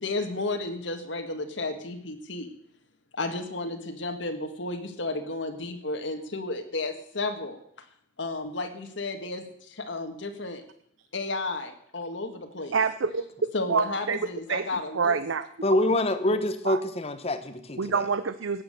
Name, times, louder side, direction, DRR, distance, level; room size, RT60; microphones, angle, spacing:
voice 1, 0.0-2.5 3.1-7.6 8.2-10.6 11.1-12.8 13.5-15.2, left 2 dB, 70° left, 5 dB, 1.8 m, -33 dB
voice 2, 12.7-13.2 13.7-14.2 14.5-14.7 14.9-15.5 16.6-16.8 17.8-18.6, right 5 dB, 85° right, 13 dB, 0.7 m, -26 dB
voice 3, 15.6-18.0, left 1 dB, 30° left, 10 dB, 1.0 m, -26 dB
15.0 x 9.7 x 6.8 m, 0.69 s
head